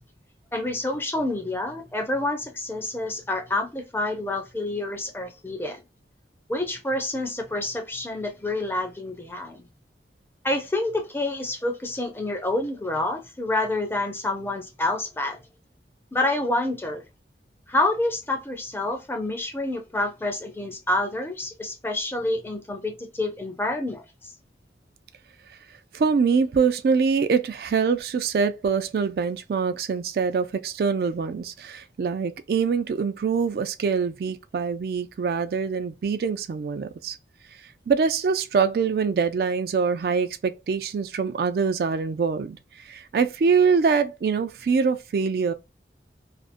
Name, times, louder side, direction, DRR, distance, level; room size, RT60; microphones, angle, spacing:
voice 1, 0.5-5.8 6.5-9.7 10.4-15.4 16.1-17.0 17.7-24.3, left 2 dB, 15° left, 0.4 m, -28 dB
voice 2, 25.9-37.2 37.9-45.5, right 5 dB, 55° right, 0.3 m, -24 dB
2.5 x 2.1 x 2.4 m
head